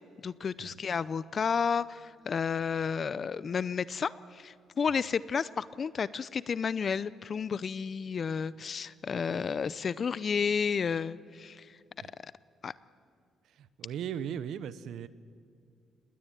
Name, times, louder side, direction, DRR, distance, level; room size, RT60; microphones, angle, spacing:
voice 1, 0.2-11.7 12.2-12.3 12.6-12.7, left 6 dB, 45° left, 18 dB, 0.5 m, -32 dB
voice 2, 13.6-15.1, right 9 dB, 75° right, 16 dB, 0.9 m, -38 dB
19.5 x 19.5 x 9.0 m, 2.3 s
cardioid pair, 90°, 0 cm